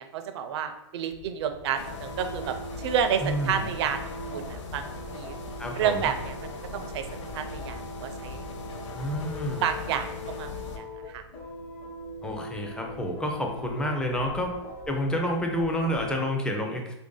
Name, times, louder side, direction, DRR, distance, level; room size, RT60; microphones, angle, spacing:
voice 1, 0.0-4.9 5.1-5.4 5.8-6.3 6.7-7.1 7.3-8.4 9.6-11.2, right 8 dB, 60° right, 8 dB, 0.5 m, -30 dB
sound 1, 1.1-16.3, equal, 40° left, 0.9 m, -41 dB
sound 2, 1.8-10.8, left 3 dB, 85° left, 0.6 m, -40 dB
voice 2, 3.2-3.7 5.6-6.1 8.9-9.6 12.2-14.5 14.9-16.9, equal, 5° left, 2 dB, 0.4 m, -29 dB
3.2 x 2.5 x 3.7 m, 0.89 s
hypercardioid pair, 140°, 15 cm